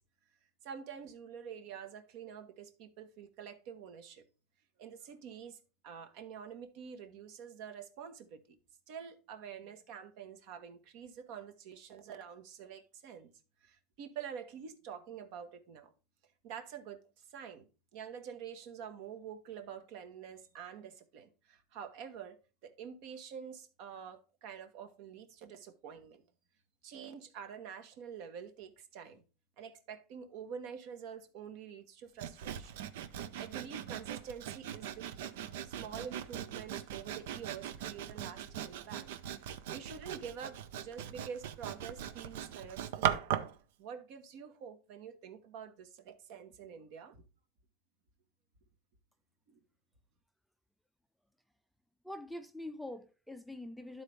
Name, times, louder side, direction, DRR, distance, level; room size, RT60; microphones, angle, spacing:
voice 1, 0.6-4.2 4.8-5.6 5.8-8.6 8.9-13.3 13.6-15.9 16.4-26.2 26.8-29.2 29.6-32.8 33.3-35.3 35.6-43.2 43.8-47.2 49.5-49.6, right 7 dB, 60° right, 1.1 m, -47 dB
Sawing, 32.2-43.6, right 10 dB, 85° right, 0.6 m, -39 dB
voice 2, 52.0-54.0, left 1 dB, ahead, 0.4 m, -44 dB
12.0 x 4.1 x 3.3 m
supercardioid pair, 145°, 0 cm